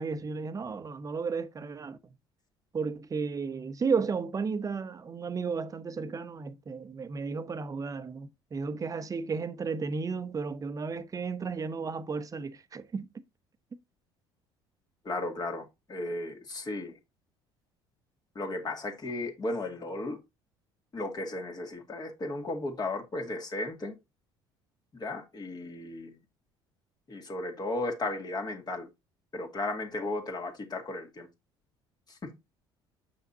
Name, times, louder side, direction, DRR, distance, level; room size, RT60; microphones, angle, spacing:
voice 1, 0.0-2.0 2.7-13.1, right 5 dB, 30° right, 0.8 m, -33 dB
voice 2, 15.0-16.9 18.4-20.2 20.9-24.0 24.9-26.1 27.1-28.9 29.3-31.3 32.1-32.4, left 2 dB, 35° left, 2.1 m, -35 dB
7.3 x 5.8 x 2.8 m
hypercardioid pair, 70°, 12 cm